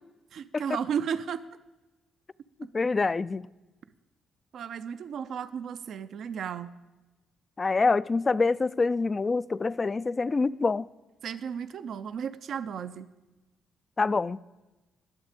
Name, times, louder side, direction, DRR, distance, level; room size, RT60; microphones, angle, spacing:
voice 1, 0.3-1.4 4.5-6.7 11.2-13.1, right 7 dB, 65° right, 0.6 m, -34 dB
voice 2, 2.7-3.5 7.6-10.9 14.0-14.4, left 4 dB, 30° left, 0.3 m, -26 dB
20.5 x 7.3 x 5.1 m
cardioid pair, 90°, 0 cm